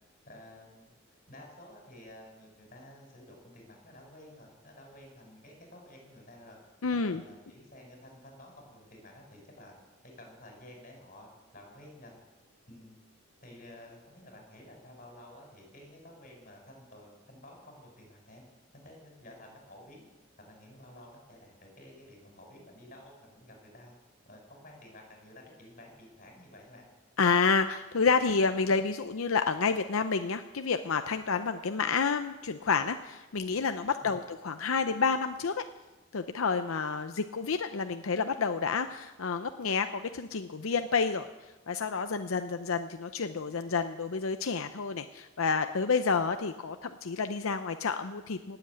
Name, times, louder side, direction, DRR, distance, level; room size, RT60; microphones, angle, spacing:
voice 1, 0.2-0.9 1.3-6.6 6.9-9.8 10.0-12.2 12.7-13.0 13.4-18.4 18.8-20.1 20.4-23.9 24.2-26.9 34.0-34.1, left 1 dB, 40° left, 0 dB, 5.9 m, -52 dB
voice 2, 6.8-7.2 27.2-35.6 36.1-41.3 41.7-48.6, left 5 dB, 85° left, 8 dB, 0.7 m, -29 dB
18.5 x 8.0 x 8.5 m, 1.1 s
head